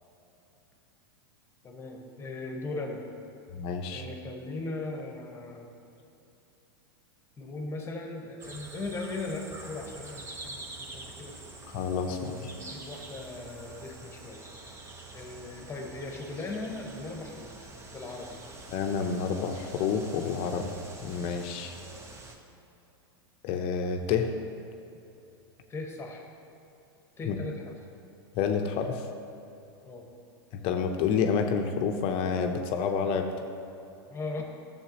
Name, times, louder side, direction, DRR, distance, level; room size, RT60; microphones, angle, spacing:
voice 1, 1.6-3.0 3.9-5.7 7.4-11.5 12.0-14.9 15.1-18.4 21.8-22.0 25.7-26.3 27.2-27.7 29.8-30.1 34.1-34.4, left 2 dB, 20° left, 2 dB, 1.2 m, -39 dB
voice 2, 3.5-4.0 11.7-12.5 18.7-20.7 21.0-21.7 23.4-24.3 27.3-27.4 28.3-29.1 30.5-33.3, left 6 dB, 45° left, 5 dB, 0.7 m, -29 dB
sound 1, 8.4-22.3, right 3 dB, 20° right, 0.9 m, -46 dB
12.5 x 7.1 x 2.9 m, 2.8 s
hypercardioid pair, 115°, 13 cm